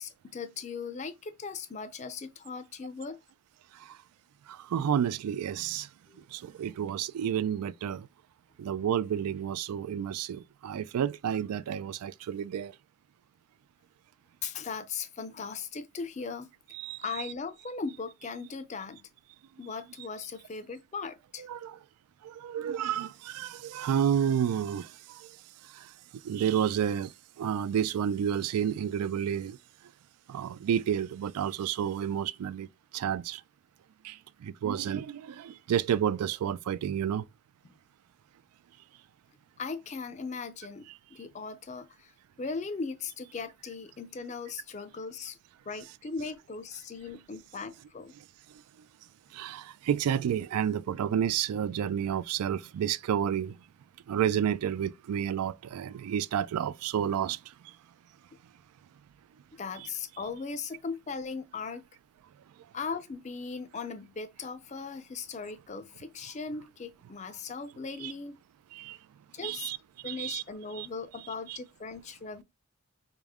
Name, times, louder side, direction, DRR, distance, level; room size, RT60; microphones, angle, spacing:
voice 1, 0.0-3.2 6.1-6.2 14.4-16.5 17.0-19.1 19.6-21.4 37.6-37.7 39.6-42.1 42.4-45.4 45.7-48.1 59.6-61.8 62.7-68.4 69.3-69.7 70.0-72.4, left 4 dB, 30° left, 0.4 m, -38 dB
voice 2, 4.5-5.9 6.3-8.1 8.6-12.7 16.7-17.2 21.4-21.8 22.2-25.3 25.7-25.9 26.2-29.6 30.3-32.7 32.9-33.4 34.0-37.2 49.3-53.6 54.1-57.4 59.8-59.9 68.0-68.1 68.7-69.0 69.4-69.8 70.0-70.4 70.8-70.9 71.5-71.6, right 9 dB, 85° right, 0.3 m, -30 dB
4.8 x 2.0 x 3.5 m
head